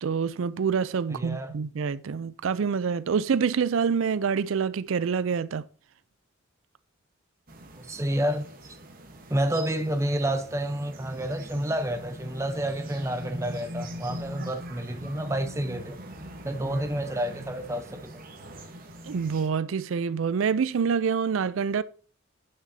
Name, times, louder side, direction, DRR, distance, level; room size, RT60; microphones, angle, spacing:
voice 1, 0.0-5.6 14.4-14.5 19.1-21.8, right 6 dB, 70° right, 0.4 m, -26 dB
voice 2, 1.1-1.5 7.8-8.4 9.3-16.0 16.4-18.2, right 1 dB, 15° right, 0.6 m, -29 dB
sound 1, 7.5-19.5, right 1 dB, 45° right, 1.1 m, -42 dB
9.1 x 6.3 x 2.7 m
head